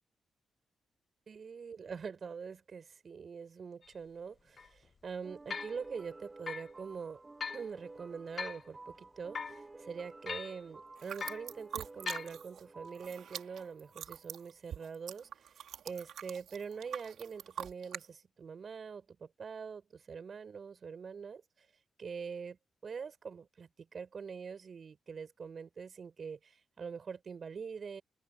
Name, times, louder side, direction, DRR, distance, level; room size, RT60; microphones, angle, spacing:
voice 1, 1.3-7.2 7.5-21.7 22.0-28.0, right 6 dB, 55° right, 6.6 m, -44 dB
sound 1, 3.8-3.9 4.6-4.7 5.5-5.8 6.5-6.7 7.4-7.6 8.4-8.7 9.3-9.6 10.3-10.6 11.2-11.5 12.1-12.3, left 5 dB, 55° left, 0.5 m, -40 dB
sound 2, 5.2-14.5, right 2 dB, 30° right, 1.9 m, -53 dB
sound 3, 11.0-12.6 12.9-18.0, right 10 dB, 75° right, 4.3 m, -45 dB
hypercardioid pair, 40°, 0 cm